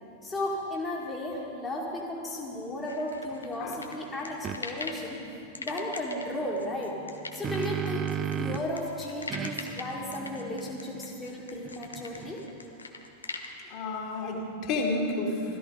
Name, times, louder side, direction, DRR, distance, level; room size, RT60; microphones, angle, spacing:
voice 1, 0.2-5.2 5.6-7.0 7.3-12.4, left 1 dB, 15° left, -4 dB, 2.1 m, -34 dB
sound 1, 2.8-5.1 5.5-13.5, left 3 dB, 80° left, 1.1 m, -41 dB
sound 2, 4.4-4.6 7.0-8.8 9.3-12.6, right 9 dB, 25° right, 0.6 m, -35 dB
voice 2, 13.7-15.6, left 2 dB, 45° left, -1 dB, 2.5 m, -31 dB
17.5 x 13.5 x 5.0 m, 2.7 s
figure-of-eight pair, 90°, 0 cm